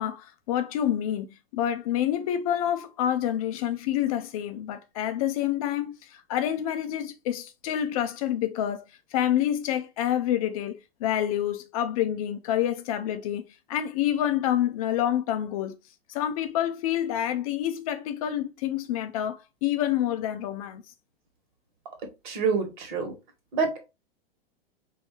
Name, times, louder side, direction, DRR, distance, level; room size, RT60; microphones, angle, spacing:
voice 1, 0.0-8.8 9.1-15.8 16.1-20.8, left 11 dB, 35° left, 0.5 m, -28 dB
voice 2, 22.2-23.1 23.5-23.9, right 5 dB, 50° right, 1.6 m, -27 dB
5.1 x 2.8 x 3.1 m
figure-of-eight pair, 95°, 30 cm